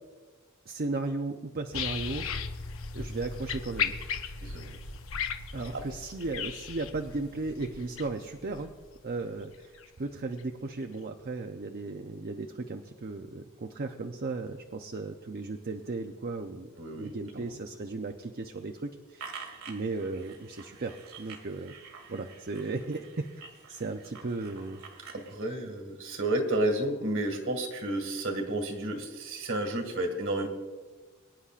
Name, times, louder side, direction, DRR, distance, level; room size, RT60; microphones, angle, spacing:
voice 1, 0.7-2.3 2.9-3.9 5.5-8.7 9.0-21.7 22.1-23.3 23.7-25.1, right 3 dB, 45° right, 5 dB, 0.6 m, -36 dB
sound 1, 1.7-9.9 10.4-10.5, left 6 dB, 65° left, 0.8 m, -36 dB
voice 2, 4.4-4.8 5.7-5.8 16.8-17.5 25.1-30.5, right 1 dB, 60° right, 3 dB, 2.0 m, -31 dB
sound 2, 19.2-25.5, right 5 dB, 80° right, 1.8 m, -48 dB
24.0 x 9.9 x 2.5 m, 1.3 s
head